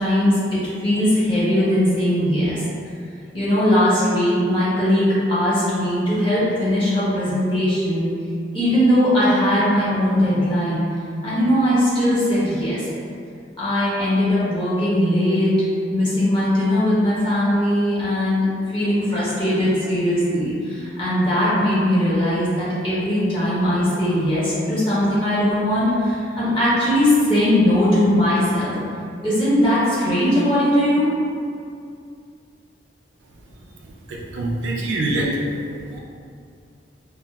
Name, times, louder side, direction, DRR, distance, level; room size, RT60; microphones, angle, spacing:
voice 1, 0.0-2.6 3.3-8.1 8.5-10.8 11.2-12.8 13.6-15.5 15.9-28.7 29.2-31.1, left 1 dB, 30° left, -10 dB, 1.0 m, -19 dB
voice 2, 34.1-35.6 35.9-36.0, right 1 dB, 85° right, -2 dB, 0.5 m, -24 dB
3.8 x 2.3 x 2.2 m, 2.4 s
head